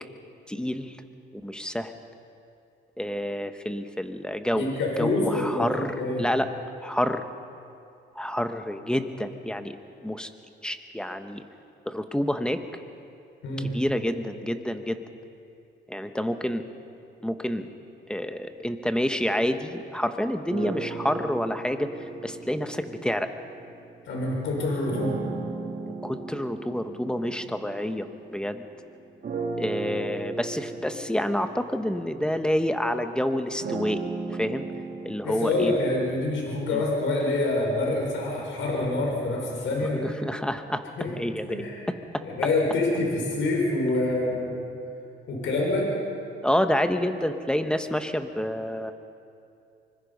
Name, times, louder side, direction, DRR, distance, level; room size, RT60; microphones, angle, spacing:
voice 1, 0.5-1.0 1.3-1.9 3.0-4.6 5.0-6.5 6.8-7.2 8.1-9.8 10.0-10.3 10.6-11.4 11.9-12.6 13.7-15.0 15.9-16.6 17.2-17.7 18.1-23.3 25.9-28.7 29.6-34.0 34.4-34.6 35.0-35.7 36.7-36.8 39.9-40.8 41.2-41.6 42.1-42.2 46.4-48.9, equal, 5° left, 8 dB, 1.3 m, -28 dB
voice 2, 4.6-6.3 13.4-13.7 24.1-25.2 35.2-40.1 41.0-41.1 41.5-41.8 42.2-44.6 45.3-45.9, left 2 dB, 75° left, -1 dB, 5.4 m, -26 dB
sound 1, 20.5-24.1 24.9-28.7 29.2-37.2, right 4 dB, 50° right, 2.2 m, -37 dB
24.5 x 21.0 x 5.5 m, 2.6 s
cardioid pair, 90°, 20 cm